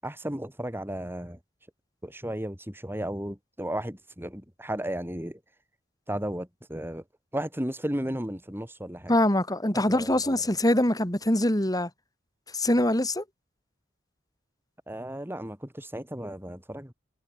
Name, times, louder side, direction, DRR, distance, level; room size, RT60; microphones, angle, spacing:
voice 1, 0.0-1.4 2.0-5.4 6.1-7.0 7.3-9.1 9.7-10.4 14.9-16.9, right 1 dB, 10° right, 7.5 m, -34 dB
voice 2, 9.1-11.9 12.5-13.2, left 1 dB, 20° left, 3.9 m, -23 dB
head